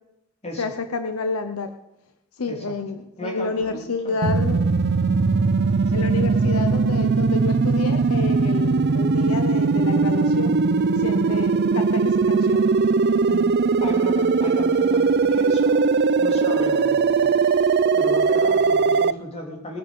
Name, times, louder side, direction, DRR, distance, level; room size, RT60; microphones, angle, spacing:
voice 1, 0.6-1.8 2.3-4.7 5.9-10.6 10.9-12.7, left 4 dB, 75° left, 8 dB, 0.8 m, -29 dB
voice 2, 3.2-4.1 6.0-6.1 13.3-15.8 16.2-17.3 17.9-19.8, left 1 dB, 30° left, 0 dB, 3.5 m, -35 dB
sound 1, 4.2-19.1, right 4 dB, 50° right, 0.5 m, -20 dB
20.0 x 10.5 x 5.4 m, 0.92 s
head